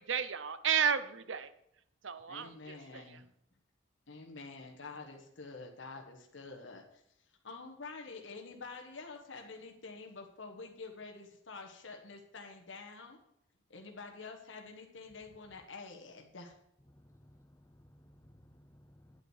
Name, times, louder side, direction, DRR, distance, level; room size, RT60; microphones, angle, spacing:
voice 1, 0.0-1.5 2.0-3.2, right 7 dB, 70° right, 13 dB, 0.7 m, -33 dB
voice 2, 2.3-3.2 4.1-7.0 7.4-13.2 13.7-16.5, left 4 dB, 70° left, 2 dB, 1.3 m, -48 dB
voice 3, 16.8-19.2, equal, 15° left, 10 dB, 0.6 m, -61 dB
9.9 x 8.3 x 4.8 m, 0.75 s
head